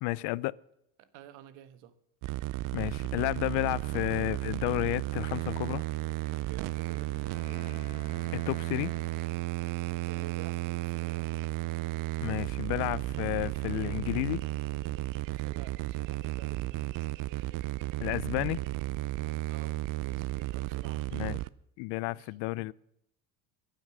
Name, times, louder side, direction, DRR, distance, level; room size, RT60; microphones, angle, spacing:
voice 1, 0.0-0.5 2.7-5.8 8.3-8.9 12.2-14.4 18.0-18.6 21.1-21.4 21.8-22.7, left 21 dB, 65° left, 0.5 m, -31 dB
voice 2, 1.0-2.0 6.3-7.7 10.1-11.3 15.3-17.1 17.3-17.5 19.1-21.1 22.1-22.4, right 12 dB, 80° right, 1.4 m, -52 dB
sound 1, 2.2-21.5, right 17 dB, 50° right, 0.5 m, -34 dB
Bowed string instrument, 5.5-9.6, left 12 dB, 85° left, 2.1 m, -55 dB
22.0 x 9.1 x 6.1 m
cardioid pair, 140°, 45 cm